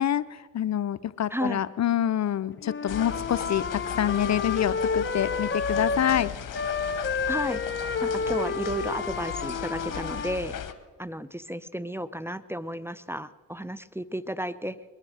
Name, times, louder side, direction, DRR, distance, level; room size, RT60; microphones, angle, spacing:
voice 1, 0.0-6.3, left 10 dB, 55° left, 17 dB, 0.5 m, -26 dB
voice 2, 1.3-1.6 7.3-7.6 8.0-10.6 11.0-14.8, equal, 5° right, 16 dB, 0.6 m, -33 dB
Wind instrument woodwind instrument, 2.6-6.3 6.5-10.4, left 5 dB, 35° left, 1.0 m, -30 dB
sound 1, 2.9-10.7, left 9 dB, 70° left, 1.0 m, -37 dB
21.5 x 9.6 x 6.4 m, 1.5 s
supercardioid pair, 45°, 34 cm